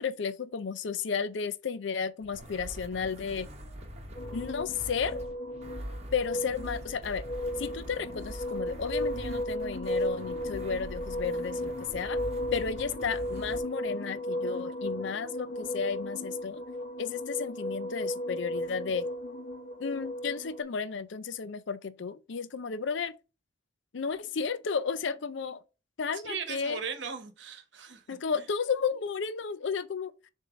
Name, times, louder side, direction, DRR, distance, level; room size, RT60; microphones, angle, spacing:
voice 1, 0.0-3.5 4.3-5.2 6.1-7.2 7.6-12.2 12.5-16.6 17.0-19.1 19.8-23.1 23.9-25.6 26.0-26.8 28.1-30.1, left 6 dB, 65° left, 0.5 m, -33 dB
sound 1, 2.2-13.6, equal, 30° right, 1.1 m, -43 dB
sound 2, 4.2-20.6, left 1 dB, 35° left, 1.0 m, -35 dB
voice 2, 26.1-28.0 28.3-28.4, right 6 dB, 65° right, 1.1 m, -38 dB
6.9 x 2.7 x 5.0 m
head